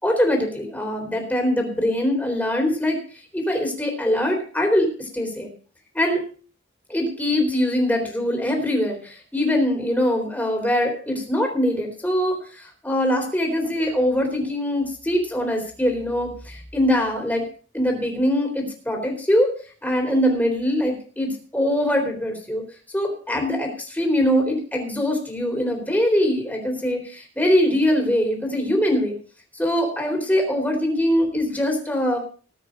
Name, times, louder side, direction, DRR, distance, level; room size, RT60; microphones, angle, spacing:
voice 1, 0.0-3.0 3.3-5.5 5.9-6.2 6.9-17.4 17.7-19.5 19.8-22.6 22.9-29.1 29.5-32.2, equal, 10° left, 2 dB, 3.9 m, -22 dB
19.5 x 6.7 x 5.1 m, 0.42 s
head